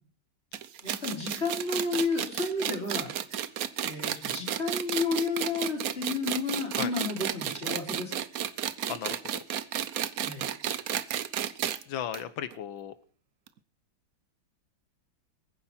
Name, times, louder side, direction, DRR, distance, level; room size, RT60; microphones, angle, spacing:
sound 1, 0.5-11.8 12.1-12.2 12.5-12.6 13.5-13.6, right 10 dB, 60° right, 1.1 m, -32 dB
voice 1, 0.8-3.1 3.8-8.1 10.2-10.5, left 3 dB, 30° left, 2 dB, 4.4 m, -31 dB
voice 2, 8.9-9.2 11.9-12.9, left 9 dB, 80° left, 13 dB, 1.7 m, -35 dB
22.0 x 9.9 x 4.3 m, 0.41 s
omnidirectional pair, 2.1 m